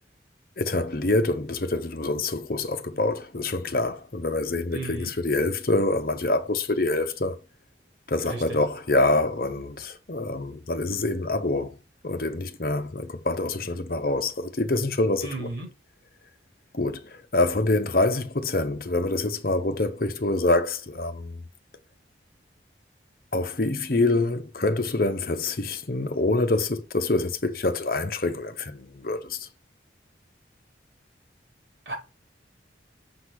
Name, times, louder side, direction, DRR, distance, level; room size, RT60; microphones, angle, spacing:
voice 1, 0.6-7.4 8.1-11.8 12.0-15.5 16.7-21.4 23.3-29.5, left 2 dB, 50° left, 0.9 m, -26 dB
voice 2, 4.7-5.1 8.2-8.6 15.2-15.7 31.9-32.0, right 2 dB, 80° right, 4.2 m, -34 dB
7.1 x 4.0 x 4.7 m
head